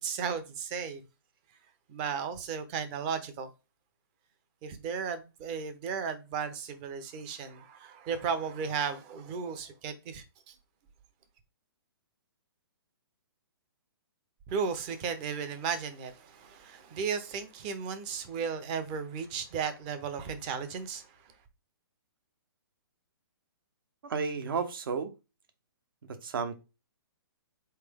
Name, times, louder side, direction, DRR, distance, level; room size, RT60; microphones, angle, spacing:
voice 1, 0.0-1.0 1.9-3.5 4.6-10.6 14.5-21.3, right 6 dB, 20° right, 0.6 m, -35 dB
voice 2, 24.0-25.1 26.0-26.6, right 5 dB, 60° right, 1.0 m, -32 dB
4.0 x 3.2 x 3.5 m
hypercardioid pair, 160°, 13 cm